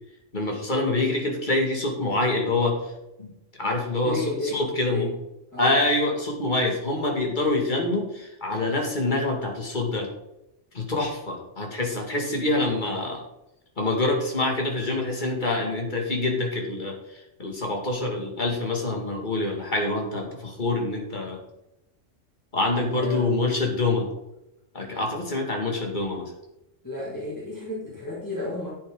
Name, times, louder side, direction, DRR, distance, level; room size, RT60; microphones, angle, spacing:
voice 1, 0.3-2.8 3.2-3.3 3.6-5.1 5.6-10.1 10.7-13.2 13.8-17.0 17.4-21.4 22.5-24.0 24.7-26.3, left 2 dB, 40° left, 1 dB, 2.4 m, -26 dB
voice 2, 4.0-5.1 5.5-5.8 22.9-23.3 26.8-28.7, left 2 dB, 15° left, -7 dB, 2.8 m, -32 dB
11.0 x 8.6 x 3.9 m, 0.88 s
omnidirectional pair, 1.3 m